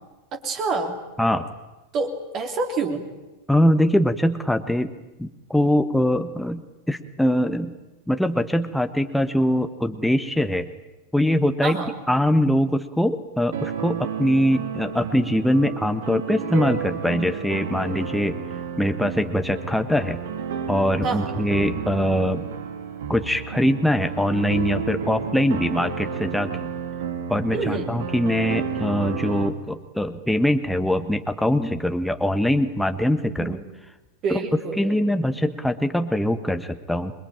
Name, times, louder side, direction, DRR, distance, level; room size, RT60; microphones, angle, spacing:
voice 1, 0.3-1.0 1.9-3.1 11.6-11.9 21.0-21.3 27.5-27.9 33.4-33.6 34.2-35.0, right 4 dB, 35° right, 4 dB, 3.3 m, -27 dB
voice 2, 3.5-4.9 5.2-6.6 6.9-7.7 8.1-10.7 11.1-11.8 12.1-18.4 18.8-20.2 20.7-22.4 23.1-26.7 27.3-33.6 34.3-34.4 34.8-37.1, equal, ahead, 7 dB, 1.4 m, -22 dB
sound 1, 13.5-29.5, right 7 dB, 60° right, 2.9 m, -31 dB
27.0 x 22.5 x 8.9 m, 1.1 s
figure-of-eight pair, 90°, 0 cm